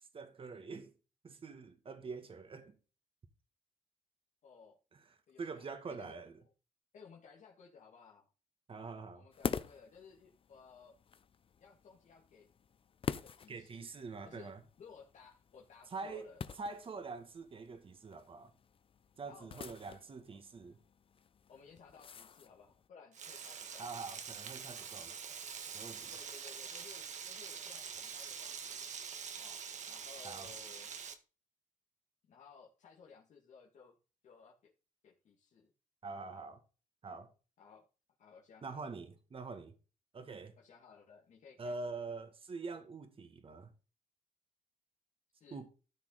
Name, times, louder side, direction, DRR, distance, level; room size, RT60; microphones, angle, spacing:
voice 1, 0.1-0.9 1.2-2.8 4.9-5.0 5.4-6.4 8.7-9.3 13.5-14.6 15.9-16.3 16.6-18.5 19.2-20.8 23.8-25.1 25.7-26.1 30.2-30.5 36.0-36.6 37.0-37.3 38.6-39.7 40.1-40.5 41.6-43.7 45.5-45.7, right 4 dB, 45° right, 2.0 m, -45 dB
voice 2, 4.4-4.8 5.3-6.1 6.9-8.3 9.1-11.0 11.6-12.5 13.1-13.9 14.2-16.4 19.2-20.0 21.5-23.9 26.1-28.9 29.4-29.6 29.9-30.9 32.3-34.0 34.2-34.7 35.0-35.7 36.3-36.5 37.6-37.8 38.2-38.9 40.6-41.9 45.4-45.6, left 6 dB, 65° left, 2.1 m, -58 dB
sound 1, 9.3-22.9, left 6 dB, 45° left, 0.7 m, -46 dB
Frying (food), 23.1-31.1, right 7 dB, 65° right, 1.7 m, -45 dB
13.5 x 6.0 x 4.0 m
cardioid pair, 90°, 13 cm